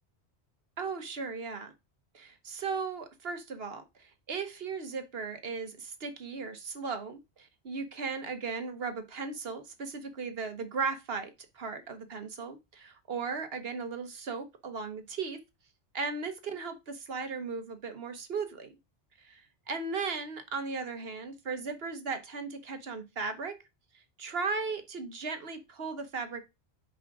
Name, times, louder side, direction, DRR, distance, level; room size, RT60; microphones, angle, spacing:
voice 1, 0.8-1.7 2.1-15.4 15.9-18.8 19.3-19.4 19.7-23.6 24.2-26.4, right 4 dB, 60° right, 8 dB, 1.3 m, -36 dB
6.0 x 5.0 x 4.8 m, 0.24 s
omnidirectional pair, 1.1 m